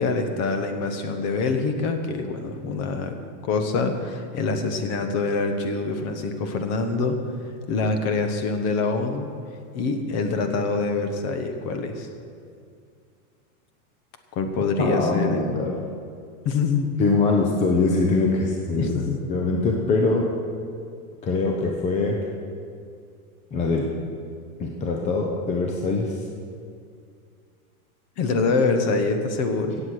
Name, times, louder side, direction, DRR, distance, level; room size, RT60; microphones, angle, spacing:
voice 1, 0.0-3.2 3.4-7.2 7.7-9.3 9.7-12.1 14.3-15.4 16.4-16.9 18.8-19.2 28.2-29.8, left 3 dB, 35° left, 7 dB, 1.2 m, -25 dB
voice 2, 14.8-15.7 17.0-19.0 19.3-20.3 21.2-22.2 23.5-23.9 24.6-26.1, left 3 dB, 15° left, 0 dB, 0.7 m, -23 dB
16.5 x 7.8 x 6.4 m, 2.3 s
supercardioid pair, 155°, 44 cm